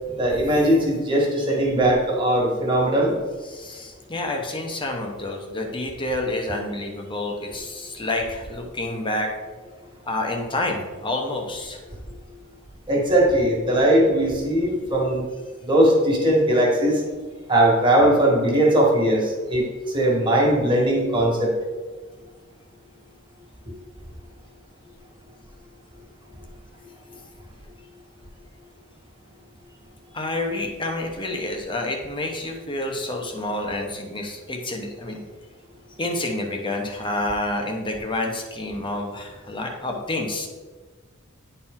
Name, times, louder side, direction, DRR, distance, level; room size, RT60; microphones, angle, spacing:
voice 1, 0.2-3.1 12.9-15.2 15.6-17.0 17.5-19.7 19.9-21.5, right 1 dB, 25° right, -2 dB, 1.8 m, -19 dB
voice 2, 3.4-9.3 10.0-11.8 30.1-35.2 36.0-40.5, left 2 dB, 25° left, 2 dB, 1.0 m, -28 dB
10.0 x 4.5 x 3.7 m, 1.4 s
head